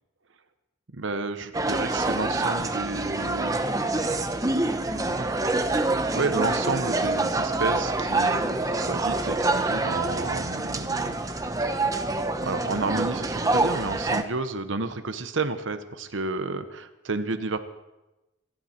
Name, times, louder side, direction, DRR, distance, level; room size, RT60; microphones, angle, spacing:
voice 1, 0.9-3.6 4.0-4.4 4.9-5.3 5.6-11.2 12.4-17.6, right 3 dB, 80° right, 9 dB, 1.0 m, -31 dB
sound 1, 1.5-14.2, right 2 dB, 20° right, 0.9 m, -26 dB
27.5 x 11.5 x 4.4 m, 1.0 s
head